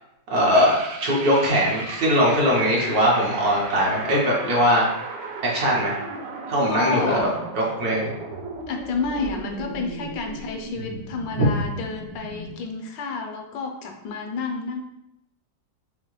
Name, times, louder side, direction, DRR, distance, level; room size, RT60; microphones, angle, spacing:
voice 1, 0.3-0.7 1.0-4.9 5.4-6.0 6.5-7.3 7.8-8.1 11.4-11.5, equal, 60° right, -4 dB, 1.4 m, -20 dB
sound 1, 0.5-12.6, right 3 dB, 80° right, 1.3 m, -36 dB
voice 2, 6.7-7.4 8.7-14.8, left 4 dB, 75° left, 3 dB, 1.2 m, -30 dB
5.5 x 2.1 x 3.1 m, 0.84 s
omnidirectional pair, 2.0 m